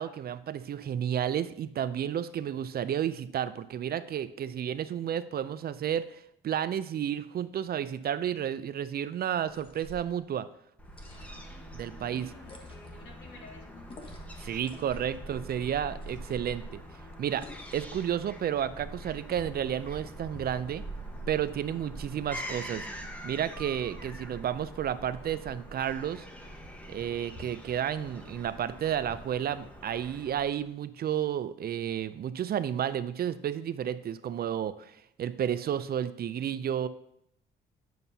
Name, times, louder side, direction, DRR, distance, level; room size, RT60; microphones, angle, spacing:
voice 1, 0.0-10.5 11.7-12.2 14.5-16.8 17.2-17.5 17.7-20.8 21.3-22.9 23.2-26.2 26.9-36.9, right 9 dB, 50° right, 14 dB, 0.4 m, -32 dB
sound 1, 9.4-10.1 10.8-11.5 12.4-13.0 13.9-14.4 14.6-15.2 16.0-16.6 17.4-17.9, left 1 dB, 25° left, 1.3 m, -50 dB
Fowl / Gull seagull, 10.8-30.7, right 1 dB, 5° left, 1.2 m, -44 dB
voice 2, 11.3-14.1 14.4-15.2 16.2-16.6, left 2 dB, 65° left, -2 dB, 2.7 m, -54 dB
9.2 x 6.8 x 2.8 m, 0.75 s
cardioid pair, 90°, 20 cm